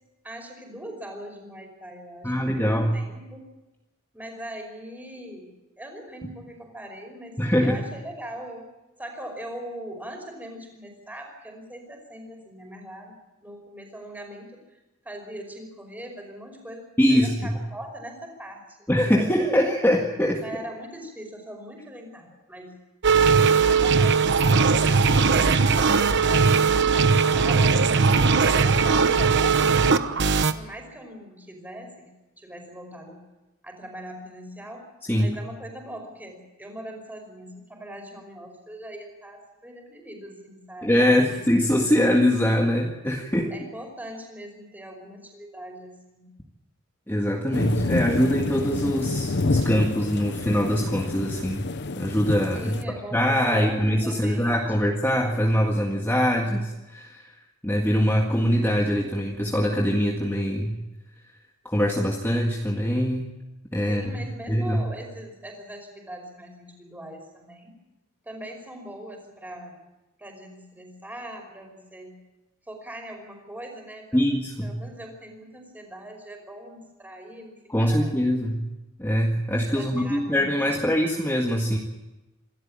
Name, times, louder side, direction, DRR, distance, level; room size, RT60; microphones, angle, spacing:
voice 1, 0.2-3.5 4.1-5.5 5.8-8.7 9.0-18.8 19.1-19.4 20.4-22.7 23.5-25.5 26.0-28.2 28.6-29.7 30.5-32.1 32.4-33.2 33.6-34.8 35.2-42.0 43.5-46.3 52.5-54.8 63.9-67.7 68.2-69.8 70.2-72.1 72.7-74.3 74.6-78.1 79.7-80.8, right 1 dB, 10° right, 2 dB, 5.3 m, -41 dB
voice 2, 2.2-2.9 7.4-7.8 17.0-17.6 18.9-20.4 35.1-35.4 40.8-43.5 47.1-51.7 52.0-52.8 53.1-57.3 57.6-60.8 61.7-63.3 63.7-64.8 74.1-74.7 77.7-78.6 79.0-81.8, equal, 10° left, 0 dB, 1.8 m, -23 dB
sound 1, 23.0-30.5, right 5 dB, 55° right, 1.0 m, -19 dB
sound 2, 47.5-52.8, left 2 dB, 55° left, 0.8 m, -28 dB
27.0 x 13.5 x 8.8 m, 1.0 s
head